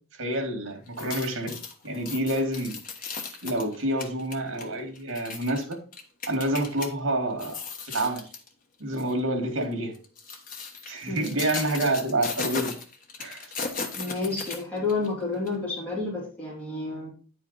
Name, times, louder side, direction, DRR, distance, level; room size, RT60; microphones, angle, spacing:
voice 1, 0.2-1.6 1.8-2.7 3.4-5.8 6.3-7.6 7.9-8.2 8.8-9.9 10.9-12.8 13.2-13.5, right 1 dB, 75° right, 4 dB, 2.3 m, -28 dB
sound 1, 0.9-6.9 7.3-8.5 8.9-9.1 9.9-15.1 15.5-15.6, left 4 dB, 40° left, 1.2 m, -36 dB
voice 2, 11.1-11.4 14.0-17.1, left 3 dB, 5° left, -7 dB, 3.1 m, -30 dB
9.9 x 5.0 x 4.1 m, 0.39 s
head